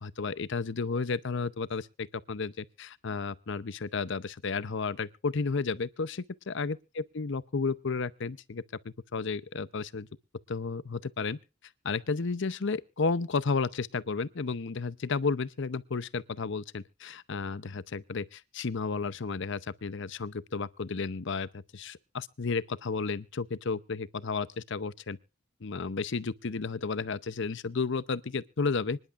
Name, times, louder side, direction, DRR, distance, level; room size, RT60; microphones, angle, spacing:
voice 1, 0.0-10.1 10.5-11.4 11.8-25.2 25.6-29.0, left 4 dB, 60° left, 0.7 m, -32 dB
25.5 x 11.0 x 2.5 m
head